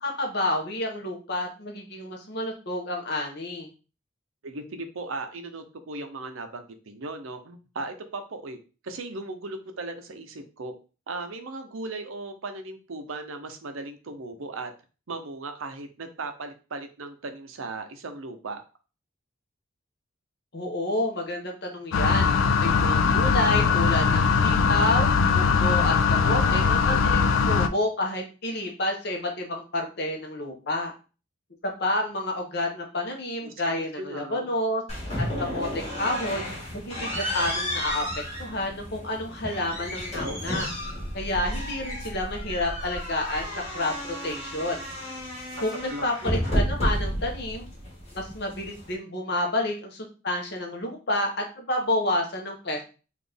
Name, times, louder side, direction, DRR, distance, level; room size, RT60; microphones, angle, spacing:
voice 1, 0.0-3.7 20.5-22.3 22.6-30.9 31.6-34.8 35.2-36.4 36.7-38.0 38.4-40.7 41.1-44.8 45.6-47.7 48.1-51.3 51.6-52.8, left 1 dB, 55° left, 2 dB, 0.9 m, -29 dB
voice 2, 4.4-8.6 8.8-10.7 11.1-14.7 15.1-18.6 26.1-27.1 33.4-34.5 40.2-40.6 45.5-45.6 45.9-46.4, right 3 dB, 80° right, 7 dB, 0.6 m, -37 dB
sound 1, 21.9-27.7, left 5 dB, 80° left, 0.3 m, -21 dB
sound 2, 34.9-48.9, equal, 30° left, 1.6 m, -32 dB
4.0 x 2.5 x 3.4 m, 0.34 s
head